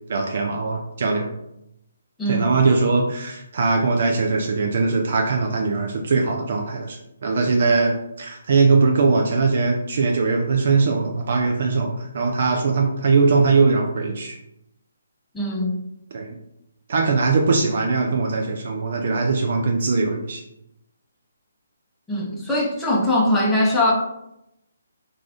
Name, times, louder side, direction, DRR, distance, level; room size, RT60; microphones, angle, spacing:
voice 1, 0.1-1.3 2.3-7.0 7.2-14.4 16.1-16.3 16.9-20.4, right 4 dB, 55° right, 1 dB, 0.4 m, -20 dB
voice 2, 2.2-2.5 15.3-15.8 22.1-23.9, left 1 dB, 5° left, -5 dB, 0.6 m, -21 dB
2.4 x 2.3 x 3.4 m, 0.84 s
figure-of-eight pair, 145°, 0 cm